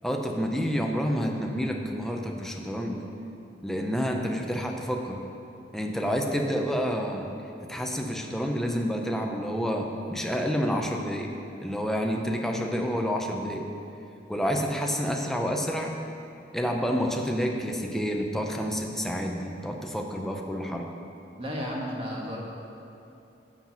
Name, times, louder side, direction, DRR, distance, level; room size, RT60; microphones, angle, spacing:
voice 1, 0.0-3.0 3.6-5.2 5.7-7.3 7.6-11.3 11.6-13.7 14.3-15.9 16.5-20.9, equal, ahead, 2 dB, 0.6 m, -29 dB
voice 2, 21.4-22.4, equal, 30° right, -3 dB, 1.4 m, -33 dB
7.9 x 7.5 x 5.8 m, 2.7 s
head